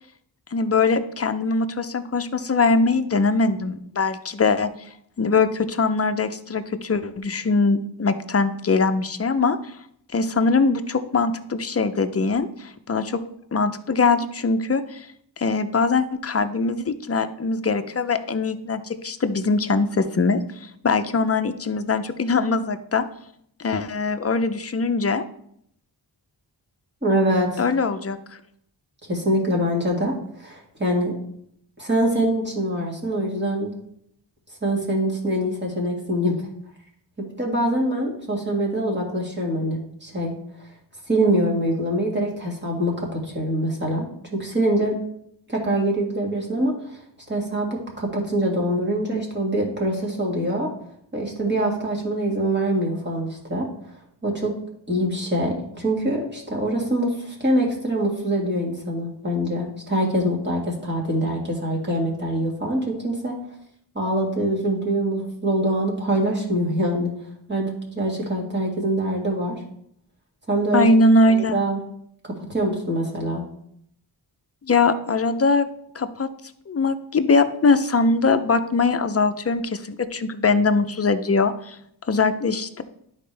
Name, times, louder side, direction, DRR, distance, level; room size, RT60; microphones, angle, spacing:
voice 1, 0.5-4.7 5.2-9.6 10.1-13.2 13.5-15.1 15.4-23.0 23.6-25.2 27.6-28.2 70.7-71.5 74.6-75.7 75.9-76.3 76.7-81.8 82.1-82.8, left 3 dB, 35° left, 9 dB, 0.5 m, -21 dB
voice 2, 27.0-27.6 29.1-31.1 31.8-33.7 34.6-36.4 37.2-40.3 41.1-45.0 45.5-47.0 47.3-47.7 48.0-50.7 51.1-53.7 54.2-54.5 54.9-63.4 64.0-67.1 67.5-69.6 70.5-70.9 71.5-71.8 72.4-73.4, right 1 dB, 25° right, -2 dB, 2.0 m, -24 dB
12.0 x 4.3 x 3.3 m, 0.70 s
wide cardioid pair, 100°, 45 cm